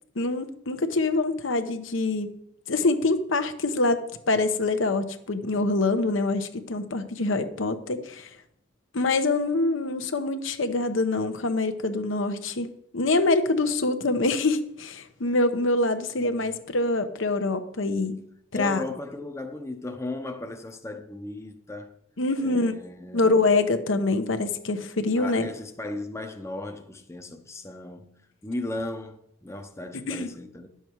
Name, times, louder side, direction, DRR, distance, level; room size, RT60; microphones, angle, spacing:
voice 1, 0.2-2.3 2.7-4.0 4.3-8.3 8.9-18.2 18.5-18.8 22.2-22.7 23.1-25.5 30.1-30.3, left 2 dB, 75° left, 0.9 m, -25 dB
voice 2, 16.0-16.6 18.5-22.0 22.4-23.5 25.2-30.7, left 2 dB, 15° left, 0.7 m, -36 dB
11.0 x 7.0 x 4.6 m
head